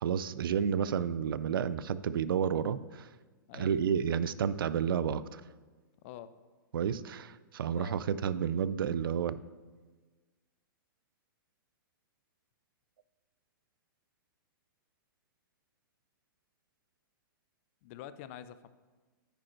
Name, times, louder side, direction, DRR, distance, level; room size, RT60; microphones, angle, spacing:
voice 1, 0.0-3.1 3.5-5.4 6.7-9.4, right 8 dB, 90° right, 16 dB, 0.4 m, -31 dB
voice 2, 6.0-6.3 7.7-8.0 17.8-18.7, left 11 dB, 40° left, 14 dB, 0.4 m, -46 dB
9.9 x 5.1 x 4.4 m, 1.4 s
hypercardioid pair, 155°, 11 cm